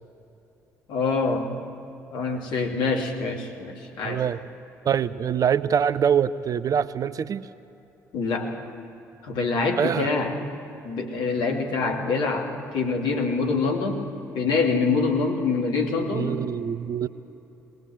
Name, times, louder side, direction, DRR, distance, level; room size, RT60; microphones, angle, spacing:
voice 1, 0.9-1.5 2.1-4.2 8.1-8.6 9.2-10.4 10.8-14.0 14.3-16.4, left 4 dB, 60° left, 1 dB, 2.6 m, -25 dB
voice 2, 4.0-4.4 4.8-7.5 9.8-10.1 16.1-17.1, right 8 dB, 45° right, 15 dB, 0.6 m, -24 dB
20.5 x 19.0 x 7.9 m, 3.0 s
figure-of-eight pair, 50°, 9 cm